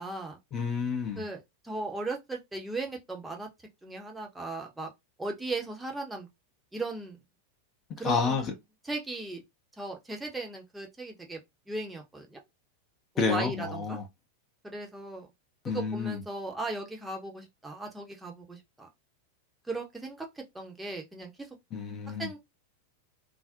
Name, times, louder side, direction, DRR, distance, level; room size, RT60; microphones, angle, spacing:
voice 1, 0.0-0.4 1.2-3.5 3.8-4.9 5.2-6.3 6.7-7.2 8.0-8.4 8.8-9.4 9.8-11.4 11.7-12.4 13.1-14.0 14.6-15.3 15.6-18.9 19.7-21.3 22.2-22.4, right 2 dB, 5° right, 0.7 m, -37 dB
voice 2, 0.5-1.2 8.0-8.5 13.2-14.0 15.6-16.2 21.7-22.3, left 5 dB, 30° left, 0.5 m, -29 dB
2.4 x 2.0 x 2.5 m
figure-of-eight pair, 90°, 0 cm